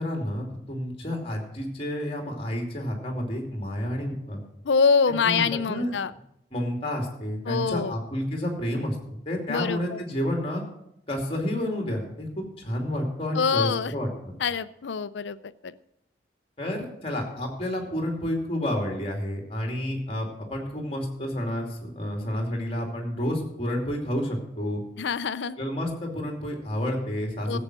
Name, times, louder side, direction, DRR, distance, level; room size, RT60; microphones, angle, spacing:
voice 1, 0.0-4.4 5.2-5.9 6.5-10.6 11.1-14.3 16.6-24.8 25.6-27.6, left 1 dB, 30° left, 1 dB, 2.6 m, -30 dB
voice 2, 4.6-6.1 7.5-7.9 9.5-10.0 13.4-13.9 14.4-15.4 15.6-15.7 25.0-25.6 27.5-27.6, left 5 dB, 80° left, 15 dB, 0.5 m, -25 dB
14.5 x 7.8 x 6.1 m, 0.78 s
head